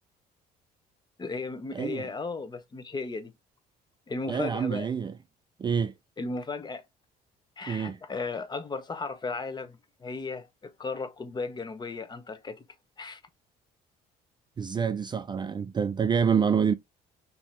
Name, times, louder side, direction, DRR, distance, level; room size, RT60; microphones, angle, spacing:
voice 1, 1.2-3.3 4.1-4.9 6.2-6.8 7.6-12.6 13.0-13.2, left 4 dB, 25° left, 0.8 m, -35 dB
voice 2, 1.7-2.1 4.3-5.1 5.6-5.9 7.7-8.0 14.6-16.7, right 6 dB, 25° right, 0.3 m, -27 dB
5.0 x 2.8 x 3.4 m
cardioid pair, 110°, 17 cm